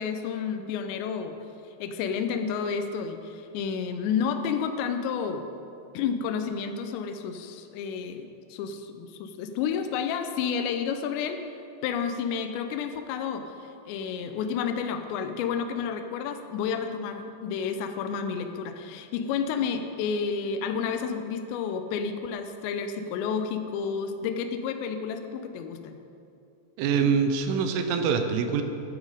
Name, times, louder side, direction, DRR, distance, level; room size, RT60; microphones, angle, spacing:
voice 1, 0.0-1.4 1.8-5.5 5.9-11.4 11.8-13.5 13.9-26.0, left 6 dB, 85° left, 7 dB, 2.5 m, -30 dB
voice 2, 26.8-28.6, right 6 dB, 80° right, 7 dB, 3.1 m, -24 dB
12.5 x 9.6 x 4.9 m, 2.7 s
omnidirectional pair, 5.9 m